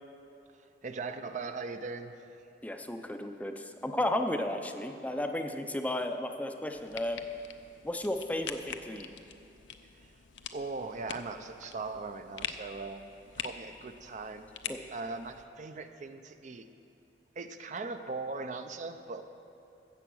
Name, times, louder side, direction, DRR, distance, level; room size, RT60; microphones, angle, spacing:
voice 1, 0.6-2.1 10.0-10.1 10.5-13.1 13.4-16.7 17.4-19.2, right 3 dB, 40° right, 8 dB, 0.5 m, -39 dB
voice 2, 2.6-7.2 7.8-9.1 14.7-14.8, left 1 dB, 10° left, 5 dB, 0.5 m, -33 dB
sound 1, 6.7-15.4, left 8 dB, 85° left, 0.6 m, -45 dB
14.5 x 7.9 x 6.2 m, 2.9 s
head